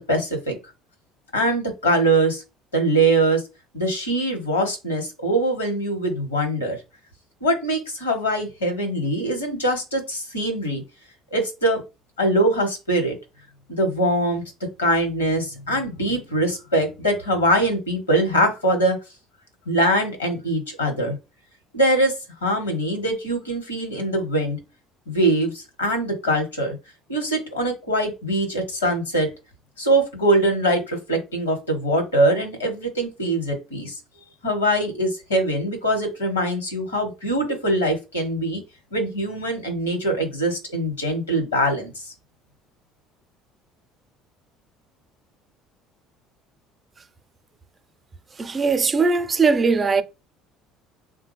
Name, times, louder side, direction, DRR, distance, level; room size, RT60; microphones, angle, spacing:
voice 1, 0.1-0.6 1.3-2.4 2.7-3.4 3.7-6.8 7.4-10.8 11.3-11.8 12.2-13.2 13.7-14.4 14.8-19.0 19.7-21.2 21.7-22.1 22.4-24.6 25.1-26.8 27.1-29.3 29.8-34.0 34.4-38.6 38.9-42.0, right 1 dB, 85° left, 1.1 m, -22 dB
voice 2, 48.4-50.0, right 4 dB, 25° right, 0.6 m, -20 dB
3.5 x 2.2 x 3.2 m
figure-of-eight pair, 60°, 0 cm